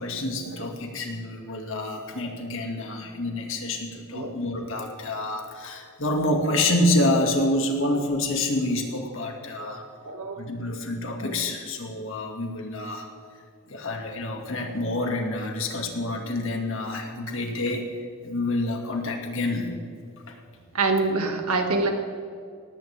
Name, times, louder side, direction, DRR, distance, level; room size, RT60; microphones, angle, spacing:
voice 1, 0.0-9.9 10.4-13.1 13.7-17.8 18.2-19.7 20.3-20.4, left 1 dB, 60° left, 2 dB, 2.3 m, -27 dB
voice 2, 10.0-10.4 20.7-21.9, right 3 dB, 85° right, 3 dB, 2.2 m, -26 dB
18.5 x 16.5 x 3.6 m, 2.3 s
head